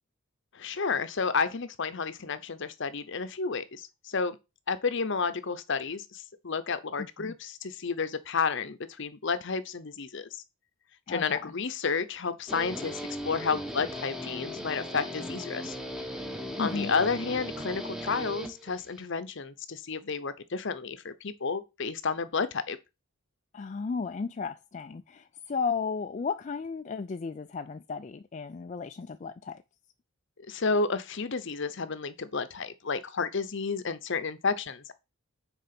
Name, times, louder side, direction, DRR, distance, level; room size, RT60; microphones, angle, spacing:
voice 1, 0.5-4.4 4.7-10.4 11.1-15.8 16.6-22.8 30.5-34.9, left 5 dB, 55° left, 0.7 m, -31 dB
voice 2, 7.0-7.3 11.1-11.5 16.6-16.9 23.5-29.6, left 5 dB, 35° left, 0.3 m, -34 dB
Guitar, 12.5-19.0, equal, ahead, 1.0 m, -38 dB
6.6 x 4.5 x 5.9 m
head